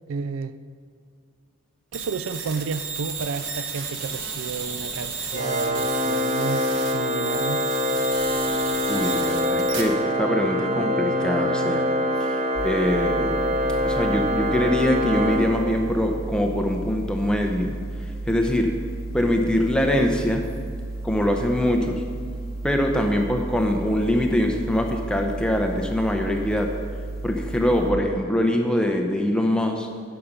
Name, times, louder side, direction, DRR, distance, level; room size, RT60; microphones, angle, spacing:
voice 1, 0.1-0.5 1.9-7.7, right 5 dB, 80° right, 13 dB, 0.4 m, -31 dB
sound 1, 1.9-9.8, right 5 dB, 60° right, 1.2 m, -33 dB
Organ, 5.3-16.1, left 1 dB, 30° right, 0.8 m, -25 dB
voice 2, 8.9-11.9 12.2-13.4 13.8-18.7 19.1-20.5 21.0-22.0 22.6-26.7 27.2-29.9, left 1 dB, 5° left, 2 dB, 0.7 m, -23 dB
sound 2, 12.5-27.9, right 2 dB, 45° left, 1.0 m, -33 dB
11.0 x 6.0 x 5.1 m, 2.1 s
head